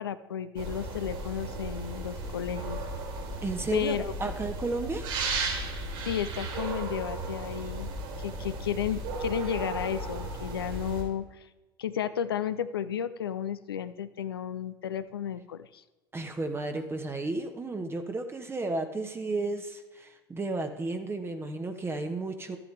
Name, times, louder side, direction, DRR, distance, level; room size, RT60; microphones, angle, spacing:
voice 1, 0.0-2.8 3.7-4.1 6.0-7.9 8.2-11.3 11.8-15.8, left 9 dB, 75° left, 13 dB, 0.5 m, -33 dB
sound 1, 0.6-11.0, right 2 dB, 55° right, 4.0 m, -35 dB
voice 2, 3.4-5.2 16.1-22.6, right 2 dB, 20° right, 6 dB, 1.0 m, -33 dB
12.5 x 8.6 x 3.3 m, 1.1 s
figure-of-eight pair, 70°, 13 cm